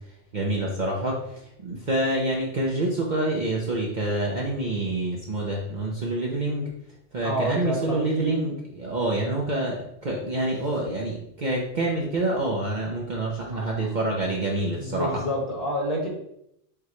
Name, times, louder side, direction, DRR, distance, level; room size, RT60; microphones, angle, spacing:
voice 1, 0.3-6.7 7.1-15.1, right 2 dB, 50° right, -2 dB, 0.7 m, -27 dB
voice 2, 7.2-8.5 13.5-13.9 14.8-16.1, equal, 35° left, -3 dB, 1.4 m, -29 dB
6.7 x 2.3 x 3.0 m, 0.75 s
omnidirectional pair, 1.2 m